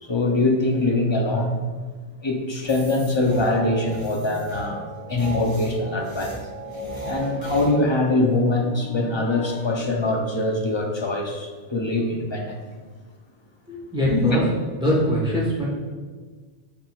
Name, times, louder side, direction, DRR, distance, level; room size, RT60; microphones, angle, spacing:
voice 1, 0.0-1.6 2.2-4.8 5.1-6.4 7.1-12.6 14.1-14.4, left 2 dB, 35° left, 1 dB, 0.5 m, -23 dB
sound 1, 2.6-7.7, right 1 dB, 25° right, 1.8 m, -35 dB
voice 2, 13.7-14.4 14.8-15.7, equal, 5° right, -5 dB, 1.1 m, -22 dB
10.5 x 4.0 x 2.3 m, 1.5 s
omnidirectional pair, 1.1 m